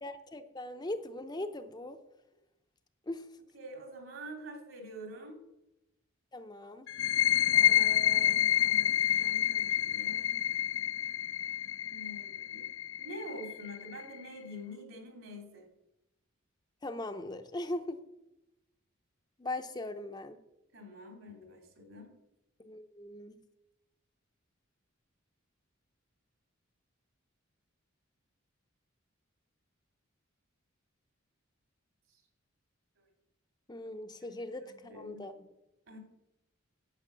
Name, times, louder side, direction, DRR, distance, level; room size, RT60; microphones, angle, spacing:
voice 1, 0.0-2.0 3.1-3.3 6.3-6.9 16.8-18.0 19.4-20.4 22.6-23.4 33.7-35.3, left 1 dB, 20° left, 7 dB, 0.6 m, -40 dB
voice 2, 3.5-5.4 7.5-10.5 11.8-12.6 13.0-15.7 20.7-22.1 33.0-33.1 34.2-34.4 34.7-35.2 35.9-36.0, equal, 70° right, 3 dB, 2.8 m, -46 dB
sound 1, 6.9-14.3, left 11 dB, 65° left, 0.5 m, -28 dB
9.8 x 8.7 x 6.7 m, 0.93 s
head